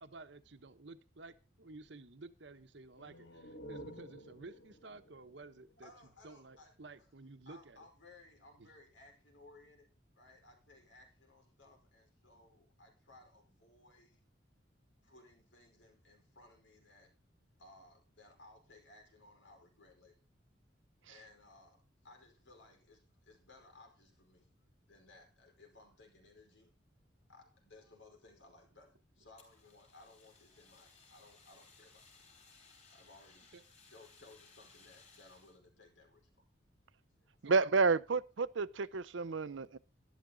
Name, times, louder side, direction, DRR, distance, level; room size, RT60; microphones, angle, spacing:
voice 1, 0.0-5.9 6.2-7.8 8.6-8.7 33.5-33.6 37.4-37.5, right 3 dB, 70° right, 1.1 m, -53 dB
sound 1, 2.9-6.5, equal, 70° left, 2.0 m, -53 dB
voice 2, 5.8-6.7 7.0-7.1 7.5-9.9 10.1-14.2 15.0-17.1 17.6-20.2 21.1-24.5 24.8-26.7 27.3-32.2 32.9-33.5 33.8-36.5, left 2 dB, 85° left, 5.2 m, -61 dB
Fire, 29.4-35.6, left 4 dB, 35° left, 4.3 m, -62 dB
voice 3, 37.4-39.8, right 4 dB, 90° right, 0.6 m, -30 dB
12.5 x 11.5 x 4.0 m
head